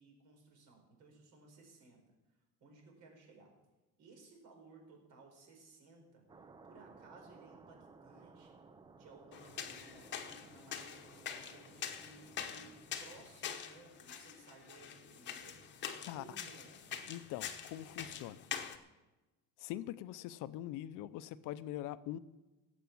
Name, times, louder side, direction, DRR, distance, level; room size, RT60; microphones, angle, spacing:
voice 1, 0.0-2.0 2.6-3.5 4.0-6.2 6.6-8.6 8.9-15.6 16.1-16.8, right 3 dB, 65° right, 5.0 m, -59 dB
sound 1, 6.3-13.3, right 4 dB, 15° right, 0.4 m, -59 dB
sound 2, 9.3-18.8, left 8 dB, 35° left, 1.0 m, -45 dB
voice 2, 17.1-18.5 19.6-22.2, left 13 dB, 70° left, 0.7 m, -43 dB
17.5 x 8.2 x 7.1 m
cardioid pair, 175°, 33 cm